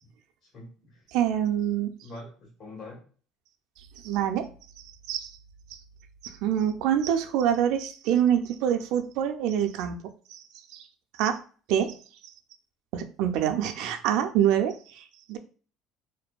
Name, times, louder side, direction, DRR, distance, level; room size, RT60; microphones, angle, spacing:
voice 1, 0.5-1.0 2.0-3.0 13.8-13.9, left 2 dB, 60° left, -2 dB, 1.4 m, -44 dB
voice 2, 1.1-1.9 4.0-4.5 5.1-5.3 6.2-10.4 10.7-10.8 11.2-11.4 11.7-12.0 12.9-15.4, right 10 dB, 75° right, 6 dB, 0.3 m, -26 dB
2.5 x 2.1 x 2.3 m, 0.41 s
supercardioid pair, 95°, 0 cm